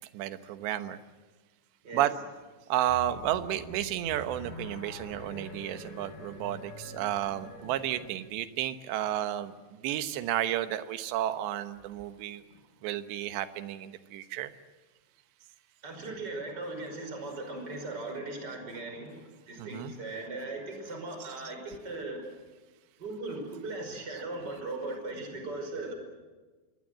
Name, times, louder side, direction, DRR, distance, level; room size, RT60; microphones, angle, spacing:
voice 1, 0.1-1.0 1.9-2.1 2.7-9.5 9.8-12.4 12.8-14.5 19.6-19.9 21.2-21.3, right 12 dB, 75° right, 11 dB, 3.3 m, -32 dB
sound 1, 2.9-8.1, left 2 dB, 75° left, 8.9 m, -45 dB
voice 2, 15.8-22.2 23.0-25.9, right 2 dB, 20° right, 4 dB, 5.5 m, -38 dB
26.0 x 22.5 x 7.6 m, 1.3 s
omnidirectional pair, 5.2 m